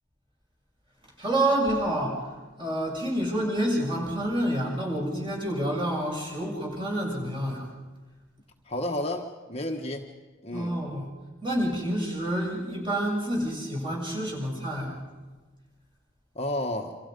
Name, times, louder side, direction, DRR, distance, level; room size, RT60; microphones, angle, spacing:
voice 1, 1.2-2.2 2.6-7.7 10.5-11.1 11.4-15.0, right 1 dB, 25° right, -2 dB, 7.4 m, -28 dB
voice 2, 8.6-10.1 10.4-10.8 16.3-17.0, left 1 dB, 30° left, 2 dB, 1.4 m, -31 dB
29.0 x 27.0 x 5.4 m, 1.3 s
head